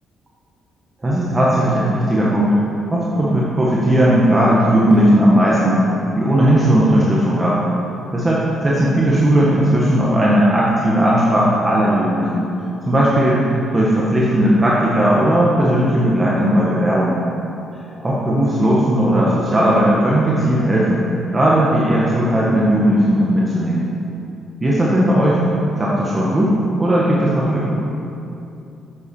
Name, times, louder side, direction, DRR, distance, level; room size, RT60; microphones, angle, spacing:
voice 1, 1.0-2.5 2.9-5.8 6.1-7.7 8.1-12.4 12.9-17.2 18.0-21.0 21.3-23.9 24.6-25.4 25.8-27.8, right 1 dB, 20° right, -6 dB, 1.4 m, -16 dB
8.1 x 7.2 x 5.4 m, 2.7 s
cardioid pair, 90°, 0 cm